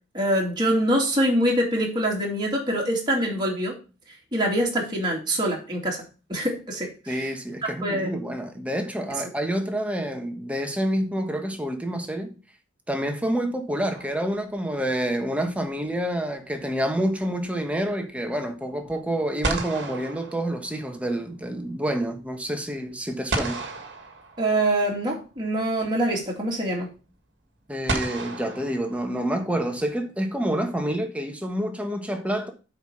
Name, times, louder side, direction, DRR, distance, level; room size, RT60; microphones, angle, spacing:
voice 1, 0.1-3.8 4.3-6.0 6.3-7.3 7.6-8.1 24.4-26.9, right 1 dB, 25° right, 2.3 m, -24 dB
voice 2, 7.1-12.3 12.9-23.6 27.7-32.5, right 1 dB, 5° right, 1.3 m, -28 dB
sound 1, 13.9-14.8 18.9-19.0 19.4-21.1 23.3-24.9 26.2-26.3 27.9-29.5, right 3 dB, 65° right, 1.5 m, -33 dB
8.0 x 4.9 x 5.7 m
head